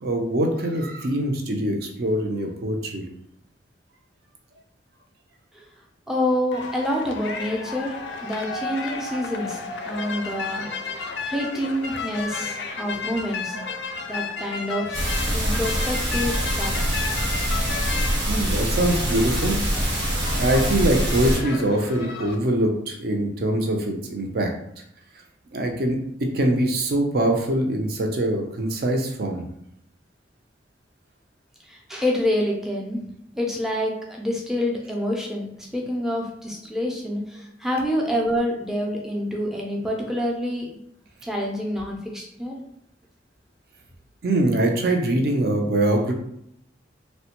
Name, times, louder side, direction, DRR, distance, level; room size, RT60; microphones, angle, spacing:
voice 1, 0.0-3.0 13.9-14.0 18.3-19.6 20.4-24.5 25.5-29.4 44.2-46.1, right 1 dB, 55° right, 3 dB, 0.5 m, -23 dB
voice 2, 6.1-13.6 14.1-15.0 15.3-16.8 17.1-17.2 31.7-33.0 33.4-40.7 41.2-42.6, left 1 dB, ahead, -1 dB, 0.4 m, -27 dB
sound 1, 6.5-22.4, left 4 dB, 70° left, 0.4 m, -33 dB
sound 2, 14.9-21.4, equal, 85° right, 1.1 m, -24 dB
3.2 x 2.1 x 2.9 m, 0.73 s
head